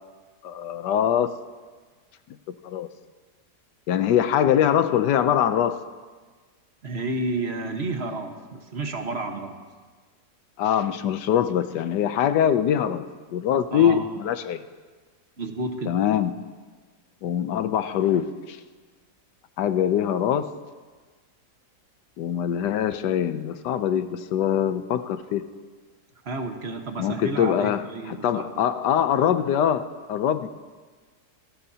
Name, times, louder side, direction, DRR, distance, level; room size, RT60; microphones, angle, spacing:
voice 1, 0.4-1.3 2.5-2.9 3.9-5.8 10.6-14.6 15.9-16.4 17.2-18.6 19.6-20.5 22.2-25.5 27.0-30.5, left 9 dB, 80° left, 11 dB, 1.3 m, -23 dB
voice 2, 6.8-9.6 13.7-14.1 15.4-16.0 26.2-28.5, right 2 dB, 40° right, 4 dB, 1.4 m, -31 dB
27.5 x 17.5 x 2.8 m, 1.5 s
omnidirectional pair, 1.8 m